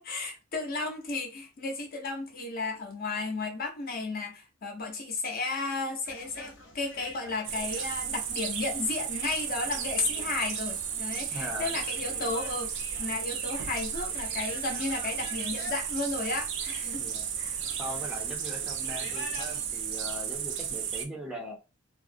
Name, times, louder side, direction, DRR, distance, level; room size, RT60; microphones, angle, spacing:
voice 1, 0.0-17.0 17.4-17.6, left 3 dB, 50° left, 0.7 m, -33 dB
sound 1, 6.1-19.7, left 2 dB, 90° left, 0.7 m, -48 dB
sound 2, 7.4-21.0, right 8 dB, 65° right, 0.4 m, -34 dB
voice 2, 11.3-11.7 17.0-17.3 17.8-21.6, equal, 5° right, 0.5 m, -40 dB
2.4 x 2.0 x 2.6 m
head